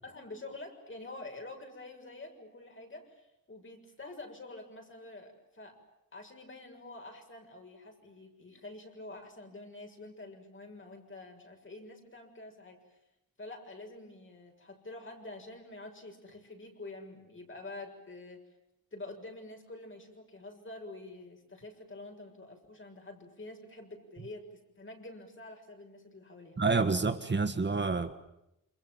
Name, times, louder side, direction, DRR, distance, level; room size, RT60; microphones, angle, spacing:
voice 1, 0.0-5.8 6.1-13.0 13.4-18.4 18.9-26.6, left 2 dB, 40° left, 3 dB, 7.0 m, -47 dB
voice 2, 26.6-28.1, right 4 dB, 35° right, 8 dB, 1.6 m, -28 dB
28.5 x 27.5 x 7.5 m, 0.86 s
wide cardioid pair, 135°, 32 cm